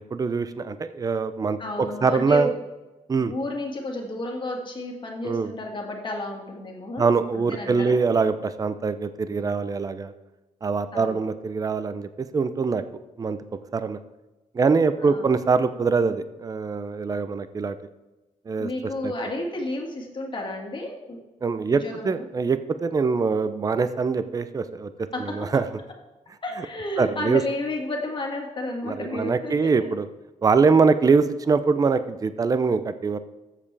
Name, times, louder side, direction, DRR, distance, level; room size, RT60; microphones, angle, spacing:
voice 1, 0.0-2.5 3.1-3.3 5.2-5.5 7.0-10.1 10.6-12.8 13.2-13.4 13.7-14.0 14.5-17.8 18.5-18.7 19.0-19.1 21.4-24.9 25.2-25.7 27.0-27.4 28.8-30.1 30.4-33.2, right 4 dB, 25° right, 12 dB, 0.5 m, -23 dB
voice 2, 1.6-2.5 3.2-8.0 10.9-11.3 15.0-15.3 18.6-21.2 21.7-22.3 25.1-25.5 26.4-29.9, left 2 dB, 35° left, 1 dB, 2.0 m, -32 dB
14.0 x 7.5 x 3.4 m, 1.1 s
cardioid pair, 125°, 14 cm